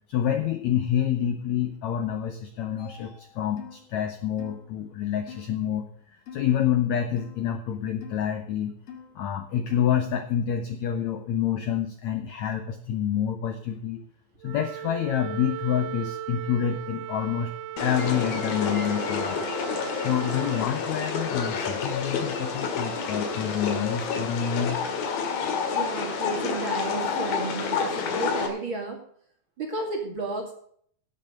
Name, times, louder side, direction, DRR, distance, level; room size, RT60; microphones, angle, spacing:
voice 1, 0.1-8.7 9.1-14.0 14.4-17.5 17.8-19.5 20.0-24.8, left 9 dB, 85° left, 7 dB, 1.6 m, -28 dB
sound 1, 3.6-3.8 4.4-4.7 5.3-5.5 6.3-6.6 7.2-7.4 8.0-8.2 8.9-9.1 9.7-10.0, left 7 dB, 40° left, 2.4 m, -44 dB
Wind instrument woodwind instrument, 14.4-20.7, right 11 dB, 85° right, 2.6 m, -37 dB
sound 2, 17.8-28.5, left 5 dB, 70° left, 3.5 m, -29 dB
voice 2, 25.7-29.0 29.6-30.5, right 2 dB, 35° right, 2 dB, 2.6 m, -32 dB
16.5 x 6.6 x 6.5 m, 0.63 s
omnidirectional pair, 4.5 m